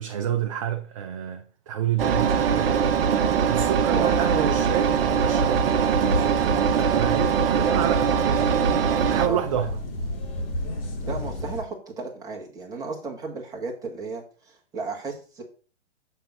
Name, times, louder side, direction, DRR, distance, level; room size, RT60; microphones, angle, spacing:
voice 1, 0.0-2.9 3.4-8.6 9.1-9.8, right 10 dB, 30° right, 0.5 m, -29 dB
Engine, 2.0-9.3, right 7 dB, 50° right, 0.8 m, -22 dB
voice 2, 3.9-4.7 9.2-9.4 11.0-15.4, right 3 dB, 10° right, 1.3 m, -34 dB
sound 1, 4.0-11.6, left 1 dB, 50° left, 2.1 m, -33 dB
6.9 x 3.6 x 5.8 m
hypercardioid pair, 140°, 37 cm